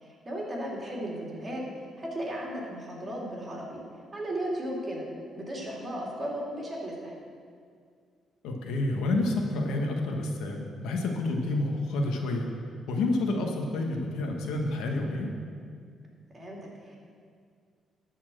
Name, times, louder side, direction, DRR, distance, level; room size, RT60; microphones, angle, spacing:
voice 1, 0.0-1.6 2.0-3.8 4.1-7.1 16.3-17.0, right 1 dB, 30° right, -3 dB, 2.8 m, -35 dB
voice 2, 8.4-12.5 12.9-15.3, left 2 dB, 90° left, 1 dB, 1.3 m, -29 dB
12.5 x 4.5 x 7.7 m, 2.1 s
cardioid pair, 90°, 0 cm